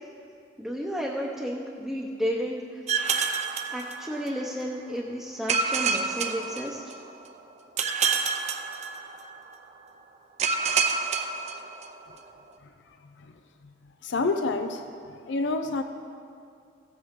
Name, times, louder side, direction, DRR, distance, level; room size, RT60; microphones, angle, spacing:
voice 1, 0.6-2.8 3.7-6.8, equal, ahead, -4 dB, 0.7 m, -32 dB
sound 1, 2.9-4.5 5.5-7.2 7.8-9.4 10.4-12.1, right 5 dB, 40° right, 0.6 m, -28 dB
voice 2, 14.0-14.8 15.3-15.8, left 3 dB, 90° left, 7 dB, 0.5 m, -27 dB
16.5 x 8.0 x 3.7 m, 2.4 s
head